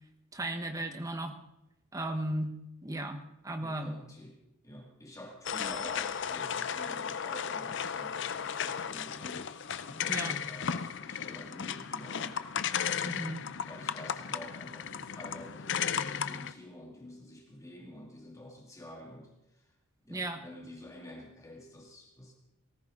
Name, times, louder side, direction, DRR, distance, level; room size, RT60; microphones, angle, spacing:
voice 1, 0.3-1.4 1.9-2.6 2.8-4.0 10.1-10.4 13.0-13.5 20.1-20.4, right 1 dB, 15° right, 7 dB, 1.0 m, -35 dB
voice 2, 3.6-4.4 4.6-13.1 13.6-19.7 20.0-22.3, left 1 dB, 15° left, 0 dB, 2.0 m, -49 dB
sound 1, 5.4-16.5, left 7 dB, 55° left, 0.5 m, -35 dB
18.0 x 14.5 x 3.7 m, 0.87 s
head